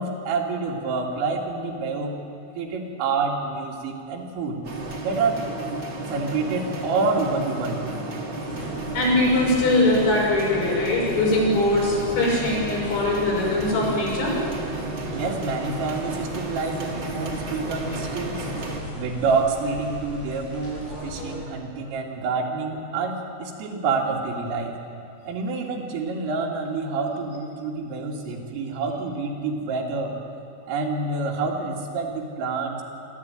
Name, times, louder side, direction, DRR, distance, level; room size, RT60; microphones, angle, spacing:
voice 1, 0.0-2.1 2.5-4.6 5.0-5.4 6.1-8.1 15.1-18.5 18.9-24.8 25.3-30.1 30.7-32.8, right 4 dB, 85° right, -1 dB, 5.0 m, -27 dB
sound 1, 4.6-18.8, right 2 dB, 40° right, 1.9 m, -32 dB
sound 2, 8.4-21.4, equal, 85° left, 10.5 m, -39 dB
voice 2, 8.9-14.4, left 2 dB, 65° left, -5 dB, 8.5 m, -21 dB
25.5 x 13.0 x 9.1 m, 2.6 s
omnidirectional pair, 5.7 m